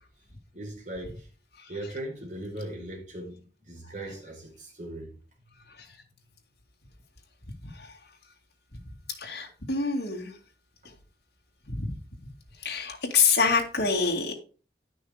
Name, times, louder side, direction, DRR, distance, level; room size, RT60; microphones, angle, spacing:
voice 1, 0.5-1.3 1.7-5.1 10.8-10.9, right 1 dB, 45° right, 4.5 m, -39 dB
voice 2, 7.6-7.9 8.7-8.8 9.2-10.3 11.7-11.9 12.6-14.3, left 5 dB, 65° left, 2.4 m, -26 dB
10.5 x 6.2 x 4.9 m
head